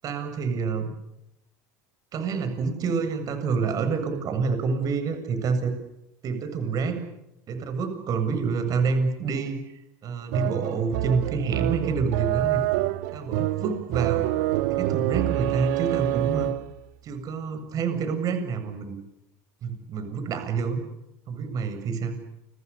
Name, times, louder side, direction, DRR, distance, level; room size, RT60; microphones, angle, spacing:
voice 1, 0.0-0.9 2.1-5.8 6.2-7.0 7.5-9.6 10.0-12.6 13.1-14.5 14.8-16.5 17.0-19.0 19.6-20.8 21.3-22.1, right 5 dB, 40° right, 8 dB, 7.5 m, -27 dB
sound 1, 10.3-16.8, right 15 dB, 80° right, 2.2 m, -27 dB
29.5 x 26.5 x 7.1 m, 0.87 s
supercardioid pair, 120°, 9 cm